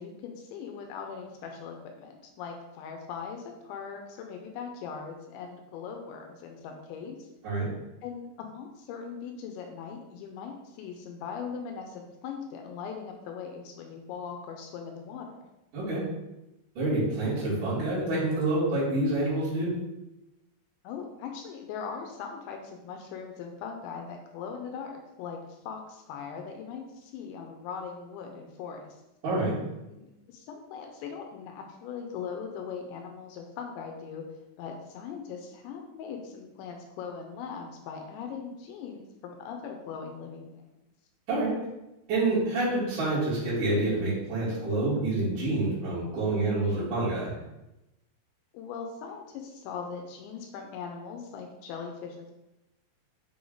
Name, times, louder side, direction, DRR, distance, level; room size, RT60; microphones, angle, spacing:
voice 1, 0.0-7.3 8.0-15.5 20.8-29.0 29.9-34.2 34.6-40.6 48.5-52.3, left 6 dB, 80° left, 3 dB, 2.8 m, -40 dB
voice 2, 16.7-19.7 29.2-29.5 41.3-41.5 42.1-47.3, right 2 dB, 50° right, -15 dB, 3.4 m, -27 dB
7.6 x 3.5 x 3.9 m, 0.96 s
omnidirectional pair, 5.5 m